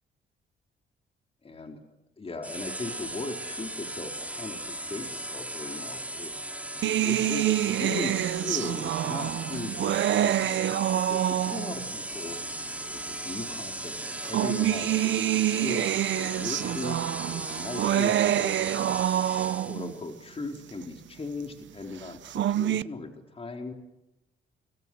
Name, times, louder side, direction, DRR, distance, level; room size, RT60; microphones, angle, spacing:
voice 1, 1.4-1.8 2.2-6.3 6.7-12.4 12.9-17.0 17.3-18.5 19.1-23.7, left 3 dB, 30° left, 3 dB, 4.2 m, -38 dB
sound 1, 2.4-20.0, right 1 dB, 5° right, 3.0 m, -37 dB
sound 2, 6.8-11.9 12.8-12.9 14.0-19.9 22.1-22.8, right 12 dB, 70° right, 0.8 m, -27 dB
29.5 x 26.0 x 6.3 m, 0.93 s
cardioid pair, 90°, 20 cm